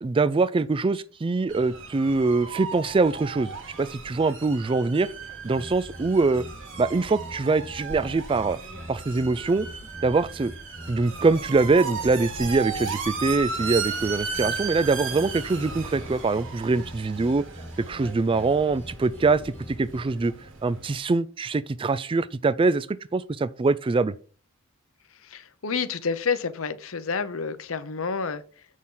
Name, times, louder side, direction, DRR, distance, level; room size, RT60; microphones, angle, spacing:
voice 1, 0.0-5.1 5.4-6.4 6.8-8.6 8.9-9.7 10.0-10.5 10.9-17.4 17.8-20.3 20.6-24.1, right 3 dB, 25° right, 0.3 m, -23 dB
sound 1, 1.5-21.0, right 5 dB, 60° right, 1.8 m, -36 dB
sound 2, 5.4-20.0, equal, 10° left, 0.9 m, -44 dB
voice 2, 25.1-28.7, left 5 dB, 70° left, 0.8 m, -29 dB
7.2 x 6.4 x 3.8 m
head